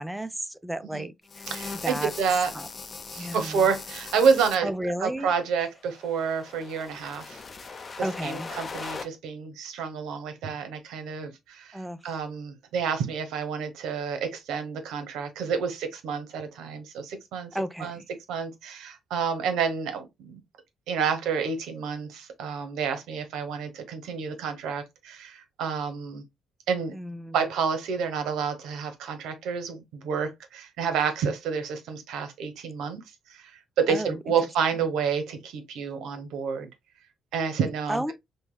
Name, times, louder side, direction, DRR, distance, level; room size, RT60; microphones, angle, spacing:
voice 1, 0.0-1.5 1.8-2.1 2.5-2.7 3.2-3.7 4.6-5.3 8.0-8.5 11.7-12.0 17.5-18.1 26.9-27.5 33.9-34.2 37.9-38.1, right 1 dB, 5° right, 0.5 m, -33 dB
sound 1, 1.3-4.6 5.7-9.0, left 4 dB, 35° left, 0.7 m, -40 dB
voice 2, 1.5-2.5 3.1-4.7 5.0-7.4 8.0-17.5 17.8-18.0 18.3-20.4 20.9-26.2 26.7-26.9 27.3-33.0 33.3-33.4 33.8-36.7 37.3-38.0, right 6 dB, 85° right, 0.9 m, -29 dB
5.2 x 2.2 x 2.2 m
cardioid pair, 90°, 0 cm